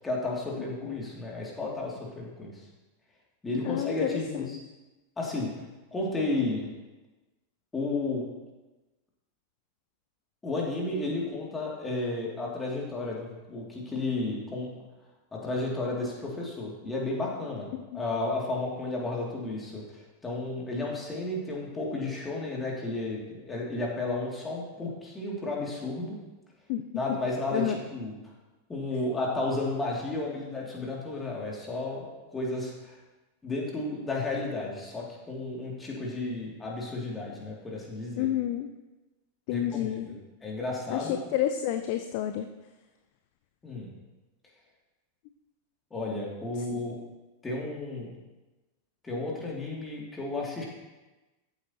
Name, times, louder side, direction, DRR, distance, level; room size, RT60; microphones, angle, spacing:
voice 1, 0.0-2.6 3.4-4.6 5.2-5.5 5.9-6.7 7.7-8.3 10.4-14.7 15.3-17.7 17.9-26.2 27.0-28.1 28.7-33.0 33.4-38.3 39.5-40.1 40.4-41.2 43.6-43.9 45.9-47.0 47.4-48.1 49.0-50.6, left 2 dB, 15° left, -3 dB, 2.7 m, -32 dB
voice 2, 3.6-4.6 17.9-18.0 26.7-26.8 27.5-27.8 38.2-38.7 39.5-40.2 40.9-42.5 46.7-46.8, left 11 dB, 45° left, 8 dB, 0.5 m, -30 dB
13.5 x 8.0 x 3.0 m, 1.1 s
figure-of-eight pair, 90°, 0 cm